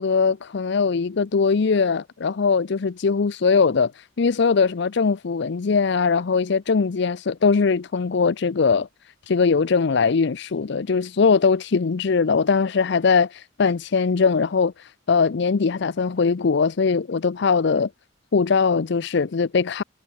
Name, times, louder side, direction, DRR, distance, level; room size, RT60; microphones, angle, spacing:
voice 1, 0.0-8.9 9.3-17.9 18.3-19.8, left 5 dB, 60° left, 0.5 m, -21 dB
head